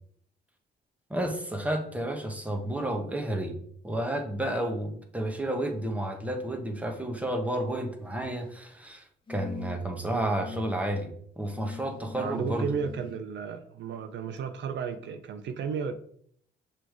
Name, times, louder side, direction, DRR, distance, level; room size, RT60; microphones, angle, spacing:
voice 1, 1.1-3.6 3.8-12.7, right 1 dB, 5° right, 3 dB, 1.1 m, -31 dB
sound 1, 8.0-8.6 9.3-10.0 10.4-10.8 11.5-13.1 14.4-14.5, left 5 dB, 25° left, 1.2 m, -43 dB
voice 2, 12.2-15.9, right 6 dB, 65° right, 8 dB, 0.6 m, -33 dB
6.1 x 3.3 x 4.7 m, 0.63 s
cardioid pair, 90°, 20 cm